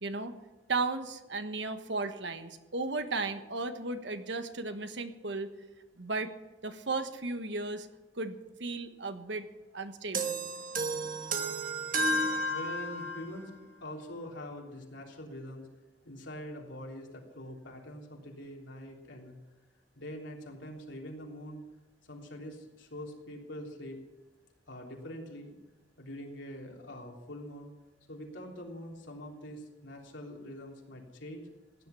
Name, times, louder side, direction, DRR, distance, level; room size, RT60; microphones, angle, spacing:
voice 1, 0.0-0.4 0.7-5.5 6.0-6.3 6.6-7.9 8.1-9.5 9.7-10.4, right 3 dB, 65° right, 8 dB, 1.3 m, -35 dB
sound 1, 10.1-13.3, right 1 dB, 45° right, 1.4 m, -32 dB
voice 2, 12.5-13.5 13.8-15.7 16.0-19.3 20.0-21.6 22.1-24.0 24.7-25.5 26.0-27.7 28.1-31.5, equal, 75° left, 0 dB, 3.5 m, -44 dB
16.0 x 11.0 x 7.1 m, 1.1 s
head